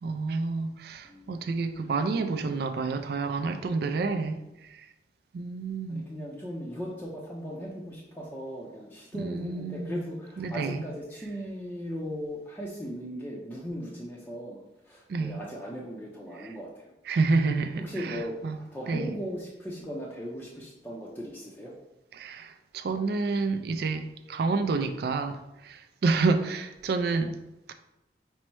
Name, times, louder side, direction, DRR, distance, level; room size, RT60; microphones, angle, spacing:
voice 1, 0.0-4.8 5.3-6.0 9.2-9.9 10.4-10.8 15.1-15.4 16.4-16.5 17.1-18.6 18.9-19.1 22.1-27.4 27.7-27.8, right 4 dB, 60° right, 0.3 m, -29 dB
voice 2, 1.0-1.5 5.9-16.9 17.8-21.7, equal, 10° left, 0.5 m, -38 dB
5.3 x 2.1 x 4.5 m
head